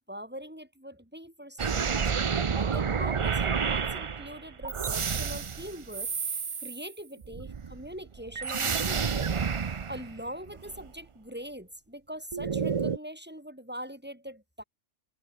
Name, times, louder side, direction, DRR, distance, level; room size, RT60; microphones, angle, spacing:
voice 1, 0.0-2.1 2.5-6.1 6.6-9.3 9.9-14.6, equal, 10° right, 4.0 m, -42 dB
sound 1, 1.6-6.9 7.2-10.9 12.3-13.0, right 6 dB, 40° right, 0.4 m, -30 dB
omnidirectional pair, 1.3 m